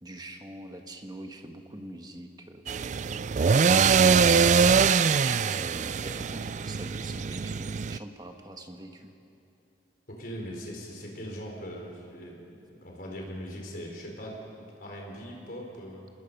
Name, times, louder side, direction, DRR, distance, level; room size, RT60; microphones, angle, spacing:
voice 1, 0.0-2.6 5.0-9.1, right 1 dB, 20° right, 5 dB, 1.4 m, -44 dB
sound 1, 2.7-8.0, right 5 dB, 40° right, 0.4 m, -23 dB
voice 2, 10.1-16.1, equal, 50° left, 0 dB, 4.4 m, -40 dB
27.0 x 20.0 x 5.5 m, 3.0 s
head